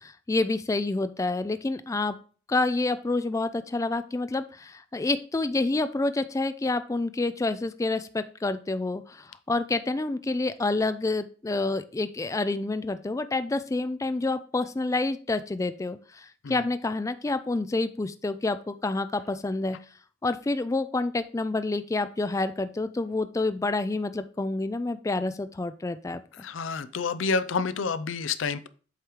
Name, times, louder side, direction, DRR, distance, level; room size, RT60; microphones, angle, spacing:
voice 1, 0.0-2.2 2.5-19.8 20.2-26.2, left 2 dB, 15° left, 11 dB, 0.3 m, -28 dB
voice 2, 26.4-28.7, left 4 dB, 90° left, 14 dB, 0.5 m, -29 dB
8.0 x 3.1 x 4.9 m, 0.39 s
head